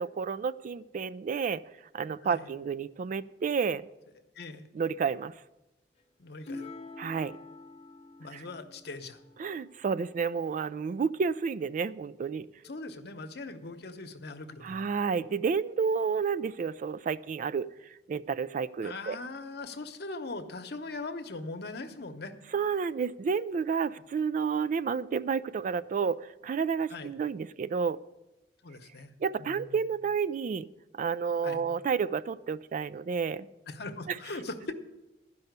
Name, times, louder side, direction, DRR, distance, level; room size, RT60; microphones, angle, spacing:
voice 1, 0.0-1.6 1.9-3.8 4.7-5.3 7.0-7.4 8.3-8.5 9.4-12.5 14.6-17.7 18.1-19.2 22.5-28.0 29.2-30.7 30.9-33.5 34.1-34.2, right 6 dB, 45° right, 17 dB, 0.3 m, -30 dB
voice 2, 4.4-4.7 6.2-6.6 8.2-9.2 12.6-14.9 18.8-22.3 26.9-27.1 28.6-29.1 29.4-29.8 31.4-31.7 33.7-34.7, left 3 dB, 65° left, 7 dB, 0.9 m, -40 dB
sound 1, 6.4-10.1 12.6-13.1, left 3 dB, 40° left, 0.9 m, -47 dB
12.0 x 5.5 x 8.0 m, 0.99 s
head